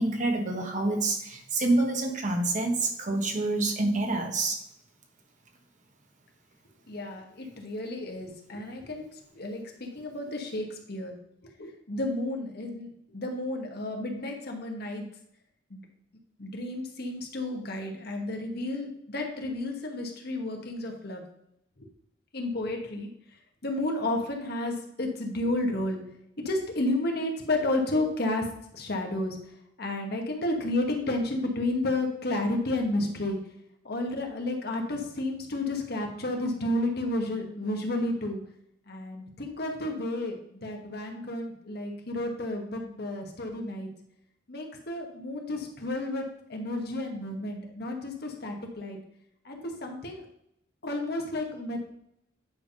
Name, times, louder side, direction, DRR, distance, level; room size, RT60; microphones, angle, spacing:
voice 1, 0.0-4.6, right 2 dB, 40° right, 3 dB, 1.3 m, -27 dB
voice 2, 6.9-9.1 9.3-11.1 11.6-15.0 15.7-15.8 16.4-21.2 21.8-21.9 22.3-23.1 23.6-26.0 26.4-28.5 28.7-29.4 29.8-33.4 33.8-38.4 38.9-43.9 44.5-46.2 46.5-49.0 49.4-50.2 50.8-51.9, left 1 dB, 55° left, 2 dB, 1.4 m, -31 dB
9.5 x 3.6 x 5.5 m, 0.74 s
head